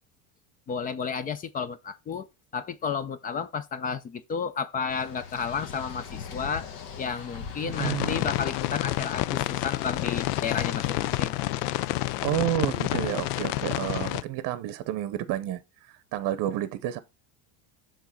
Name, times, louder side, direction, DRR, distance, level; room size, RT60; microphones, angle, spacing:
voice 1, 0.7-2.3 2.5-6.7 7.0-11.4, left 6 dB, 20° left, 0.3 m, -32 dB
sound 1, 4.9-11.2, left 7 dB, 60° left, 1.4 m, -41 dB
voice 2, 7.6-8.3 12.2-17.0, right 12 dB, 45° right, 0.8 m, -30 dB
sound 2, 7.7-14.2, left 17 dB, 80° left, 0.6 m, -29 dB
7.2 x 3.9 x 5.6 m
supercardioid pair, 135°, 46 cm